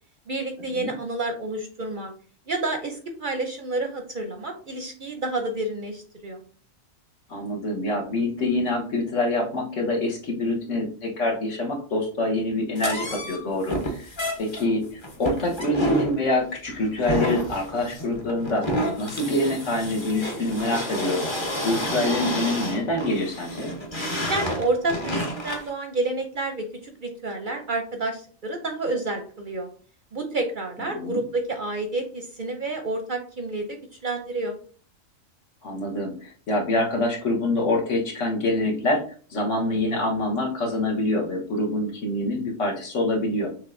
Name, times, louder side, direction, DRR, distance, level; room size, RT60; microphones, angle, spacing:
voice 1, 0.3-2.1 2.5-6.4 24.3-29.7 30.1-34.5, right 2 dB, 50° right, 4 dB, 0.6 m, -29 dB
voice 2, 7.3-14.1 14.4-18.7 19.0-21.2 21.6-23.7 30.9-31.2 35.6-43.6, left 1 dB, 70° left, -1 dB, 1.6 m, -26 dB
sound 1, 12.8-25.7, equal, 25° left, 0.8 m, -29 dB
6.4 x 3.2 x 2.5 m, 0.42 s
omnidirectional pair, 1.3 m